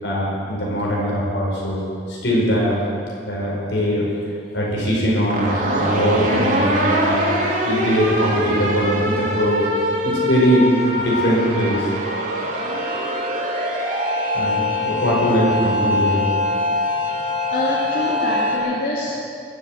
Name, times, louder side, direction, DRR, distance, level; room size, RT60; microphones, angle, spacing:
voice 1, 0.0-2.8 3.3-4.1 4.5-7.3 7.6-9.6 10.0-10.7 11.0-11.9 14.3-16.3, equal, 80° left, -3 dB, 4.9 m, -21 dB
sound 1, 5.2-18.6, left 1 dB, 45° right, 2.5 m, -23 dB
voice 2, 17.5-19.1, left 1 dB, 60° left, -7 dB, 2.6 m, -25 dB
21.0 x 7.9 x 7.8 m, 2.4 s
head